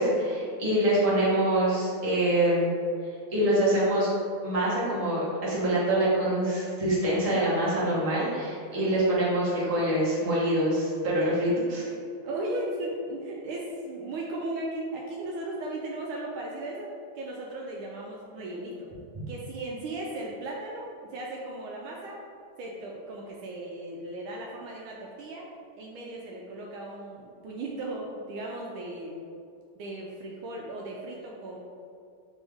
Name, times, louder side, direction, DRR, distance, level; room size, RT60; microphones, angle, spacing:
voice 1, 0.0-2.7 3.3-4.1 4.4-11.8, right 1 dB, 25° right, -8 dB, 0.8 m, -25 dB
voice 2, 12.2-18.9 19.3-22.2 22.6-25.5 25.8-29.2 29.8-31.6, right 1 dB, 75° right, -2 dB, 1.3 m, -36 dB
4.0 x 3.5 x 3.4 m, 2.3 s
omnidirectional pair, 2.3 m